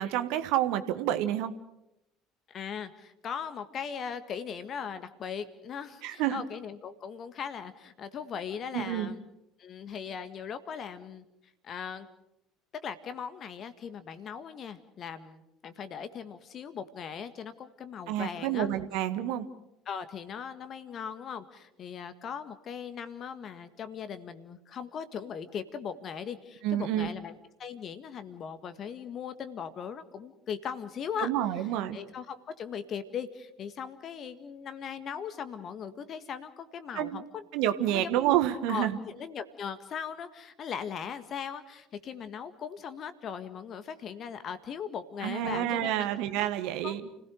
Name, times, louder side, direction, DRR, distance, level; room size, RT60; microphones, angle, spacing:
voice 1, 0.0-1.5 6.0-6.4 8.7-9.1 18.1-19.5 26.6-27.1 31.2-32.0 36.9-37.2 37.5-39.0 45.2-47.0, right 12 dB, 60° right, 10 dB, 1.4 m, -28 dB
voice 2, 2.5-9.2 9.6-11.3 11.6-12.1 12.8-18.7 19.9-31.3 31.6-31.7 31.9-37.4 37.9-38.3 38.7-45.9 46.8-47.1, left 7 dB, 45° left, 11 dB, 1.8 m, -39 dB
30.0 x 17.0 x 6.4 m, 0.85 s
figure-of-eight pair, 60°, 0 cm